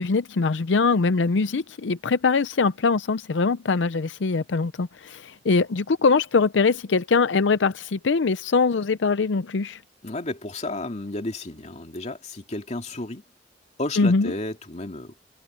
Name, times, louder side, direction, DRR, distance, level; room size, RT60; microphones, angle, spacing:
voice 1, 0.0-9.8 14.0-14.3, left 4 dB, 85° left, 0.6 m, -22 dB
voice 2, 10.0-13.2 13.8-15.3, left 2 dB, 40° left, 2.6 m, -32 dB
head